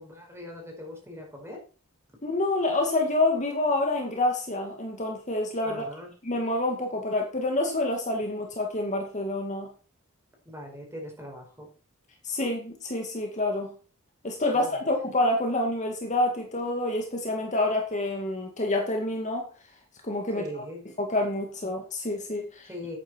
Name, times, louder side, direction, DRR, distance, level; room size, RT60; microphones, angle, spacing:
voice 1, 0.0-1.6 5.6-6.1 10.5-11.7 14.5-14.9 20.3-20.8 22.7-23.0, left 1 dB, 10° right, 5.2 m, -41 dB
voice 2, 2.2-5.9 6.2-9.7 12.2-13.7 14.2-19.5 20.0-20.5 21.0-22.7, left 2 dB, 35° left, 2.2 m, -27 dB
11.5 x 9.3 x 4.6 m
head